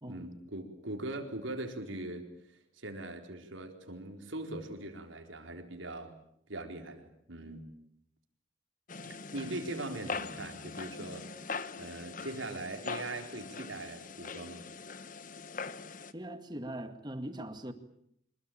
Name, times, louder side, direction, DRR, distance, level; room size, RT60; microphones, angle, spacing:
voice 1, 0.0-6.1 6.5-7.7 9.0-11.3 11.8-14.6, right 2 dB, 80° right, 4 dB, 4.4 m, -41 dB
sound 1, 8.9-16.1, left 4 dB, 45° left, 1.1 m, -42 dB
voice 2, 16.1-17.7, right 1 dB, 20° right, 9 dB, 1.9 m, -41 dB
26.0 x 22.0 x 8.9 m, 0.72 s
head